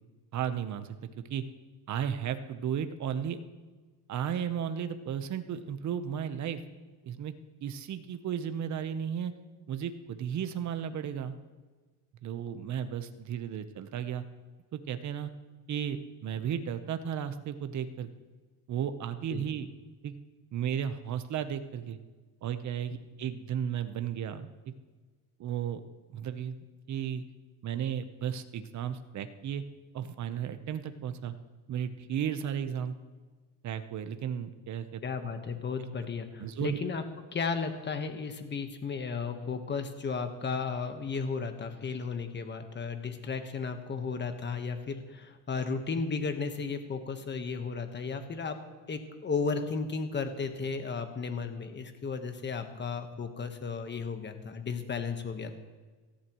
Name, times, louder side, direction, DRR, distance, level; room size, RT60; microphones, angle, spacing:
voice 1, 0.3-1.4 1.9-3.4 4.1-6.6 7.0-7.3 7.6-9.3 9.7-11.3 12.2-14.2 14.7-15.3 15.7-18.1 18.7-19.7 20.0-20.1 20.5-22.0 22.4-24.5 25.4-25.8 26.1-26.6 26.9-27.2 27.6-29.6 29.9-31.3 31.7-32.9 33.6-35.0 36.4-36.8, right 8 dB, 45° right, 10 dB, 1.0 m, -34 dB
voice 2, 35.0-37.0 37.3-48.6 48.9-55.5, left 5 dB, 25° left, 7 dB, 1.3 m, -34 dB
18.0 x 14.5 x 3.1 m, 1.4 s
cardioid pair, 125°, 40 cm